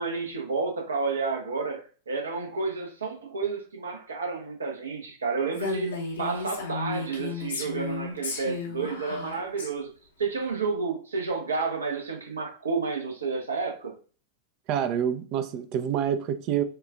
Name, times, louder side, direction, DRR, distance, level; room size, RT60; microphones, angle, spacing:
voice 1, 0.0-9.9 10.2-13.9, right 4 dB, 70° right, 0.9 m, -31 dB
Female speech woman speaking, 5.5-9.7, left 3 dB, 70° left, 0.8 m, -33 dB
voice 2, 14.7-16.6, right 9 dB, 40° right, 0.4 m, -27 dB
6.4 x 2.4 x 2.3 m
figure-of-eight pair, 90°, 0 cm